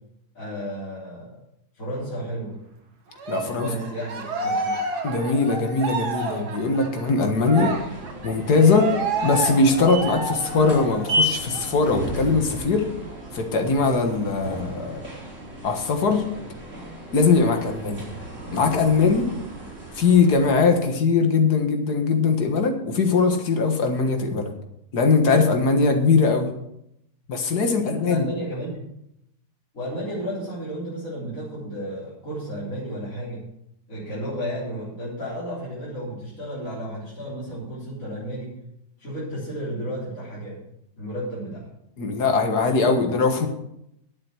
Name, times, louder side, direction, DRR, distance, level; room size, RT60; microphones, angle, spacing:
voice 1, 0.3-1.4 1.7-2.6 3.4-4.8 27.8-28.8 29.7-33.4 33.9-38.6 39.0-40.6 41.0-41.6, equal, 55° left, -9 dB, 4.2 m, -33 dB
Cheering, 3.2-11.2 11.5-11.7 12.1-13.1, right 3 dB, 85° right, 2.2 m, -30 dB
voice 2, 3.3-3.7 5.0-7.8 8.2-8.9 9.2-12.9 13.3-15.0 15.6-16.2 17.1-18.1 18.5-19.3 19.9-24.5 24.9-26.5 27.3-28.3 42.0-43.5, left 4 dB, 80° left, 5 dB, 2.1 m, -20 dB
sound 1, 7.3-20.8, equal, 50° right, 5.1 m, -34 dB
10.5 x 8.7 x 6.3 m, 0.80 s
omnidirectional pair, 1.7 m